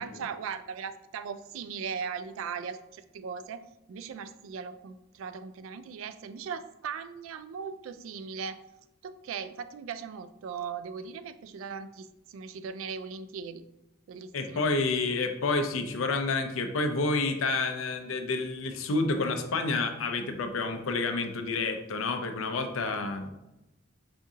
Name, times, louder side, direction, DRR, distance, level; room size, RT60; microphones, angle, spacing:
voice 1, 0.0-3.6 3.9-8.7 9.0-13.6 14.1-14.6, right 6 dB, 75° right, 13 dB, 0.3 m, -38 dB
voice 2, 14.3-23.3, left 3 dB, 80° left, 6 dB, 0.6 m, -29 dB
5.1 x 2.7 x 3.6 m, 0.94 s
head